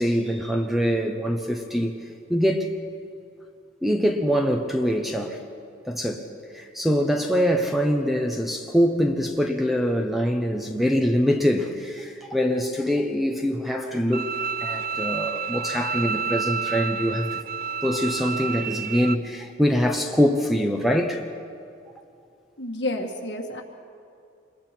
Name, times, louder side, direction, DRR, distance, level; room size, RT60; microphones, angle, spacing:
voice 1, 0.0-2.0 2.3-2.8 3.8-5.4 5.8-6.3 6.5-14.3 14.6-17.4 17.8-21.2, equal, ahead, 3 dB, 0.9 m, -24 dB
Bowed string instrument, 14.1-19.1, right 6 dB, 50° right, 0.5 m, -29 dB
voice 2, 22.6-23.6, left 1 dB, 60° left, 1 dB, 2.1 m, -30 dB
27.0 x 22.0 x 4.6 m, 2.4 s
head